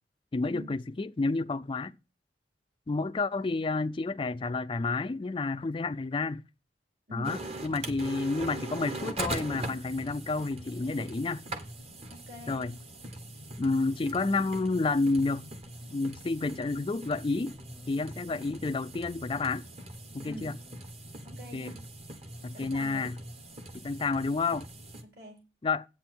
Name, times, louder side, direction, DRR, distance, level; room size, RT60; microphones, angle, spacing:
voice 1, 0.3-2.0 2.9-6.4 7.1-11.4 12.5-12.7 13.6-15.5 15.9-17.5 17.9-19.6 20.1-20.6 21.5-21.7 22.4-23.2 23.7-24.7 25.6-25.9, left 3 dB, 30° left, 0.4 m, -30 dB
sound 1, 7.2-25.0, right 1 dB, 35° right, 1.3 m, -42 dB
sound 2, 9.1-11.5 16.8-20.8, equal, 5° right, 1.0 m, -54 dB
voice 2, 12.1-12.7 20.2-20.5 21.2-21.8 22.4-23.1 25.0-25.4, equal, 60° right, 3.8 m, -45 dB
8.6 x 8.5 x 4.5 m
head